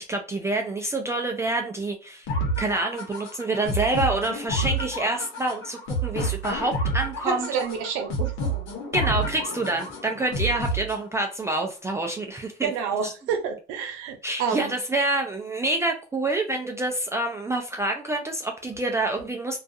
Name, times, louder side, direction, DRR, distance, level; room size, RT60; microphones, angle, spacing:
voice 1, 0.0-2.3 2.6-7.5 8.9-12.7 13.0-13.1 14.2-19.6, right 2 dB, 15° right, 0.3 m, -27 dB
sound 1, 2.3-11.3, right 1 dB, 75° left, 0.9 m, -29 dB
voice 2, 7.2-8.3 12.6-14.7, right 6 dB, 90° right, 0.7 m, -28 dB
2.3 x 2.3 x 2.5 m
cardioid pair, 110°, 20 cm